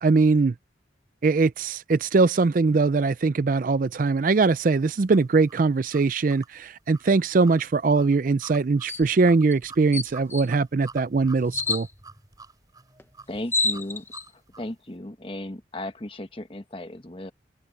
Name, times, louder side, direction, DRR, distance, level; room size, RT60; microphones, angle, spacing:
voice 1, 0.0-0.5 1.2-11.9, right 4 dB, 45° right, 0.4 m, -21 dB
sound 1, 4.7-14.8, right 3 dB, 20° right, 3.9 m, -48 dB
sound 2, 8.9-9.1 9.5-9.6 9.9-10.5 11.5-11.8 13.0-13.1 13.3-14.2, left 3 dB, 15° left, 0.8 m, -27 dB
voice 2, 13.3-14.1 14.3-17.3, left 1 dB, 30° left, 1.2 m, -36 dB
head